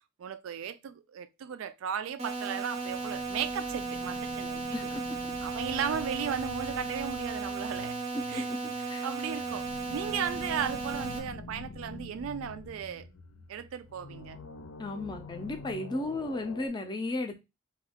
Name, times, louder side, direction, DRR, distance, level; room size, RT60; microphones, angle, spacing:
voice 1, 0.2-4.9 5.4-8.0 8.3-8.5 8.8-13.1 13.5-14.4, right 7 dB, 85° right, 0.3 m, -36 dB
sound 1, 2.2-11.2, right 3 dB, 30° right, 0.5 m, -35 dB
sound 2, 2.7-16.7, left 2 dB, 85° left, 0.6 m, -47 dB
voice 2, 8.1-9.0 14.8-17.4, left 2 dB, 20° left, 0.4 m, -35 dB
2.6 x 2.3 x 3.4 m
head